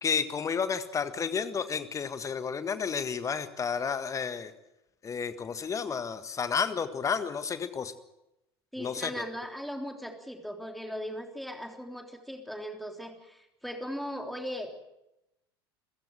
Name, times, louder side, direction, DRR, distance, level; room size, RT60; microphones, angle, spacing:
voice 1, 0.0-4.5 5.0-7.9 8.8-9.3, left 6 dB, 25° left, 12 dB, 1.7 m, -31 dB
voice 2, 8.7-14.7, equal, ahead, 4 dB, 3.4 m, -38 dB
29.0 x 16.0 x 7.5 m, 0.90 s
figure-of-eight pair, 75°, 14 cm